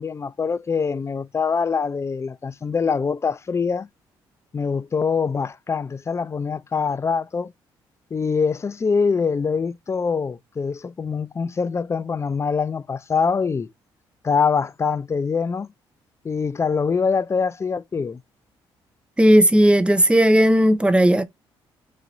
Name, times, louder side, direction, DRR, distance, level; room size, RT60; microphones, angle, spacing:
voice 1, 0.0-3.9 4.5-7.5 8.1-13.7 14.2-15.7 16.2-18.2, left 5 dB, 25° left, 0.3 m, -24 dB
voice 2, 19.2-21.2, equal, 10° right, 0.6 m, -15 dB
3.2 x 2.4 x 3.9 m
supercardioid pair, 60°, 10 cm